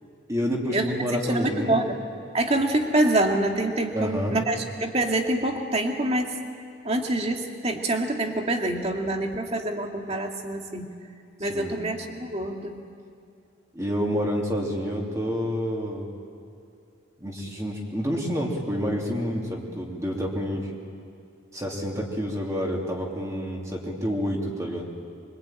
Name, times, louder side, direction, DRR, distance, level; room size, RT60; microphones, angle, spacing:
voice 1, 0.3-1.8 3.9-4.4 11.4-11.8 13.7-16.1 17.2-20.7 21.5-24.9, equal, 15° right, -2 dB, 3.0 m, -28 dB
voice 2, 1.3-2.0 2.3-6.4 6.8-10.9 11.4-12.8, right 1 dB, 30° right, 2 dB, 2.2 m, -26 dB
25.0 x 24.5 x 9.0 m, 2.4 s
head